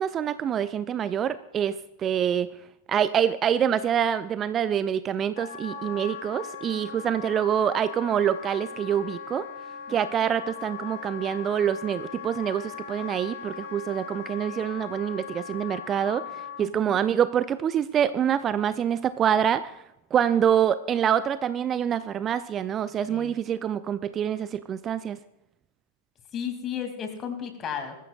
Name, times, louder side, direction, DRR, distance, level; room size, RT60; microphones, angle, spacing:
voice 1, 0.0-2.5 2.9-9.5 9.9-19.8 20.1-25.2, right 9 dB, 25° right, 15 dB, 0.5 m, -26 dB
Wind instrument woodwind instrument, 5.3-16.7, left 7 dB, 55° left, 2.3 m, -39 dB
voice 2, 16.6-17.0 23.1-23.3 26.3-28.0, left 8 dB, 30° left, 5 dB, 2.6 m, -34 dB
21.5 x 13.5 x 2.4 m, 0.85 s
figure-of-eight pair, 90°, 0 cm